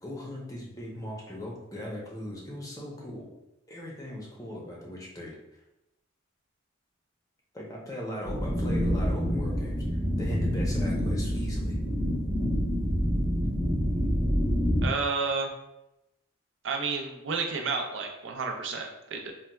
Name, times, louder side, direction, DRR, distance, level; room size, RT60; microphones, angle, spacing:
voice 1, 0.0-3.3 3.7-5.3 7.5-9.8 10.2-11.8, equal, 20° left, -3 dB, 0.6 m, -39 dB
sound 1, 8.2-14.9, equal, 10° right, 0.8 m, -27 dB
voice 2, 14.8-15.5 16.6-19.3, right 4 dB, 70° right, 2 dB, 0.5 m, -31 dB
4.0 x 2.2 x 2.2 m, 0.90 s
head